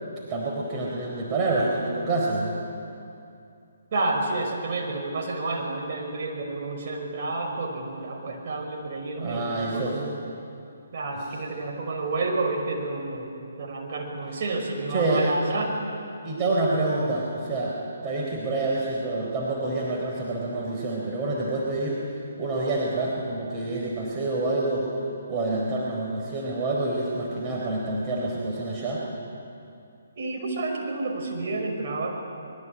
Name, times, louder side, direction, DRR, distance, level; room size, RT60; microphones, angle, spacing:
voice 1, 0.3-2.5 9.2-10.0 14.9-15.2 16.2-17.8 18.0-22.0 22.4-24.9 25.3-29.0, right 2 dB, 25° right, -3 dB, 4.2 m, -27 dB
voice 2, 3.9-10.1 10.9-13.3 13.6-15.7 30.2-32.1, right 2 dB, 45° right, 1 dB, 5.6 m, -30 dB
24.5 x 21.5 x 8.7 m, 2.6 s
figure-of-eight pair, 140°, 0 cm